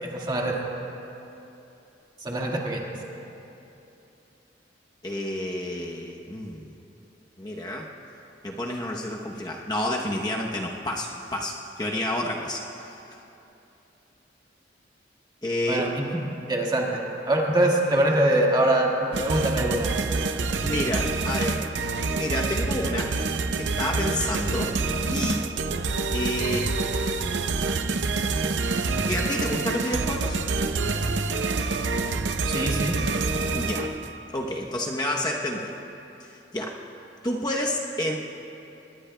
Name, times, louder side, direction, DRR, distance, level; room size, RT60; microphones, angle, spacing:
voice 1, 0.0-0.6 2.2-2.8 15.7-16.1 16.3-17.0 17.2-19.9 32.4-33.0, right 1 dB, 25° right, -1 dB, 1.7 m, -23 dB
voice 2, 5.0-6.7 7.4-7.9 8.4-13.0 15.4-15.9 20.6-21.6 22.1-23.1 23.6-24.7 25.1-25.5 26.1-26.7 29.1-30.4 33.5-33.9 34.3-35.8 36.2-36.7 37.2-38.2, left 1 dB, 25° left, -1 dB, 0.8 m, -29 dB
sound 1, 19.1-34.2, right 3 dB, 85° right, 0.6 m, -27 dB
23.5 x 20.0 x 2.2 m, 2.9 s
head